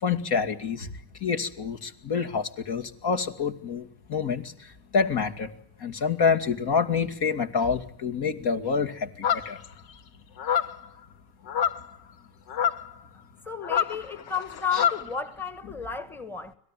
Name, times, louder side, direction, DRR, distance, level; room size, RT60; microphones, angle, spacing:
voice 1, 0.0-0.9 1.2-4.5 4.9-5.5 5.8-9.6 14.7-14.8, left 5 dB, 55° left, 2.5 m, -27 dB
sound 1, 9.2-9.7 10.4-10.8 11.5-11.9 12.5-12.9 13.6-15.1, left 8 dB, 70° left, 1.4 m, -26 dB
voice 2, 13.4-16.5, left 6 dB, 5° left, 1.3 m, -33 dB
25.5 x 17.5 x 9.2 m
supercardioid pair, 80°, 46 cm